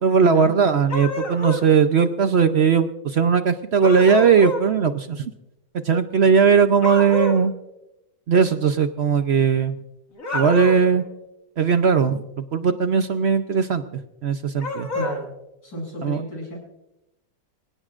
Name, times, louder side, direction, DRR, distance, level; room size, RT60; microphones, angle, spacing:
voice 1, 0.0-5.3 5.8-7.5 8.3-9.7 10.3-11.0 11.6-13.8 14.2-14.9 16.0-16.2, right 6 dB, 60° right, 9 dB, 0.6 m, -18 dB
sound 1, 0.9-1.7 3.8-4.7 6.8-7.4 10.2-10.9 14.6-15.2, left 2 dB, 45° left, 2.5 m, -27 dB
voice 2, 14.9-15.2 15.6-16.6, equal, 75° left, -2 dB, 8.3 m, -32 dB
27.0 x 17.0 x 2.5 m, 0.91 s
omnidirectional pair, 2.0 m